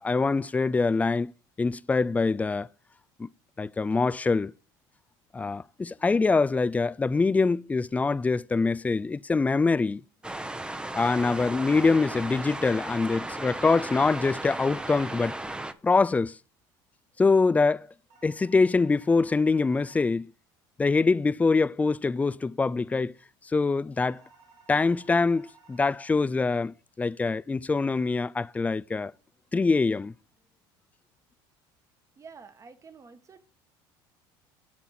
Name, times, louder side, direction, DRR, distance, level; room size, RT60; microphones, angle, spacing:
voice 1, 0.0-1.3 1.6-2.7 3.2-3.3 3.6-4.5 5.3-10.0 11.0-15.4 15.8-16.4 17.2-17.9 18.2-20.3 20.8-23.1 23.5-24.2 24.7-29.1 29.5-30.1, left 4 dB, 15° left, 0.3 m, -24 dB
sound 1, 10.2-15.7, right 1 dB, 10° right, 0.8 m, -35 dB
sound 2, 18.1-20.1 24.1-26.1, right 4 dB, 70° right, 3.6 m, -57 dB
voice 2, 32.2-33.4, right 5 dB, 25° right, 1.3 m, -49 dB
8.3 x 7.4 x 4.3 m
supercardioid pair, 100°, 11 cm